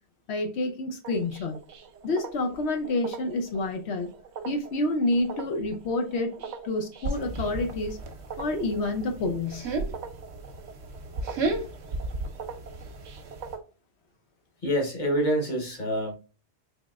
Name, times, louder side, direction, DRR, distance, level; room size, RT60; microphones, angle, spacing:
voice 1, 0.3-1.6 2.0-4.1 4.4-6.3 6.6-8.0 8.4-9.7, left 2 dB, 70° left, 0.9 m, -28 dB
sound 1, 1.0-13.6, right 6 dB, 55° right, 0.5 m, -44 dB
sound 2, 7.0-13.6, right 2 dB, 75° right, 1.0 m, -34 dB
voice 2, 14.6-16.2, equal, 45° left, 1.1 m, -26 dB
4.0 x 3.0 x 2.3 m
omnidirectional pair, 1.2 m